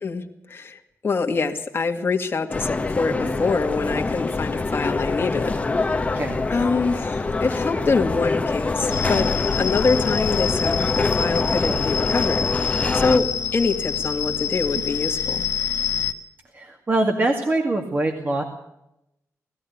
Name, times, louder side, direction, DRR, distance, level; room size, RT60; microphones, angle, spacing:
voice 1, 0.0-6.2 6.5-9.3 9.5-13.3 13.5-15.4, left 4 dB, 40° left, 3 dB, 2.1 m, -25 dB
sound 1, 2.5-13.2, left 3 dB, 25° left, 1.4 m, -25 dB
sound 2, 8.9-16.1, left 7 dB, 70° left, 1.3 m, -26 dB
voice 2, 16.5-18.4, right 2 dB, 35° right, 2 dB, 2.2 m, -24 dB
19.5 x 14.0 x 9.5 m, 0.87 s
wide cardioid pair, 115°, 6 cm